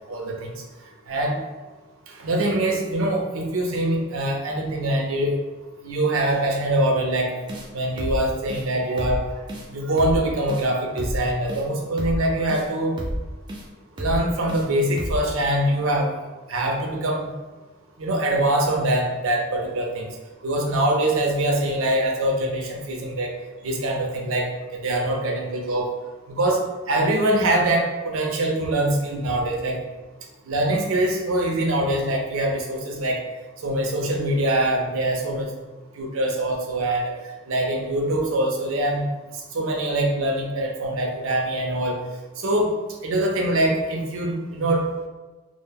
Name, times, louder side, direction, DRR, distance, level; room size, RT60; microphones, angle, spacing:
voice 1, 0.1-0.6 1.1-1.4 2.1-5.4 5.8-7.4 7.7-9.2 9.7-13.0 14.0-16.2 16.5-17.3 18.0-20.1 20.4-23.3 23.6-24.5 24.8-25.9 26.3-29.8 30.5-33.2 33.6-35.5 36.0-37.1 37.5-39.1 39.5-42.0 42.4-42.7 43.0-45.1, right 1 dB, 80° right, 1 dB, 0.5 m, -23 dB
sound 1, 7.5-7.7 8.0-8.2 8.5-8.6 9.0-9.2 9.5-9.7 10.0-10.2 10.5-10.7 11.0-11.2 11.5-11.6 12.0-12.2 12.5-12.7 13.0-13.2 13.5-13.6 14.0-14.2 14.5-14.7 15.0-15.2, equal, 20° right, 0.3 m, -29 dB
2.1 x 2.1 x 3.3 m, 1.2 s
head